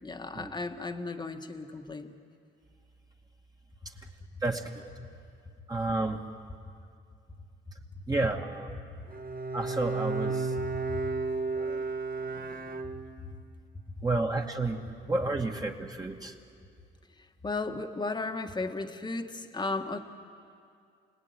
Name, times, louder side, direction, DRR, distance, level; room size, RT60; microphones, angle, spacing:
voice 1, 0.0-2.1 10.9-11.0 17.4-20.0, left 3 dB, 20° left, 5 dB, 1.7 m, -35 dB
voice 2, 4.4-4.9 5.7-6.2 8.1-8.7 9.5-10.5 11.5-11.8 14.0-14.8 15.1-16.3, right 2 dB, 20° right, 1 dB, 2.3 m, -31 dB
Bowed string instrument, 9.1-13.4, right 3 dB, 45° right, 1.8 m, -33 dB
29.0 x 19.5 x 9.6 m, 2.4 s
cardioid pair, 90°, 20 cm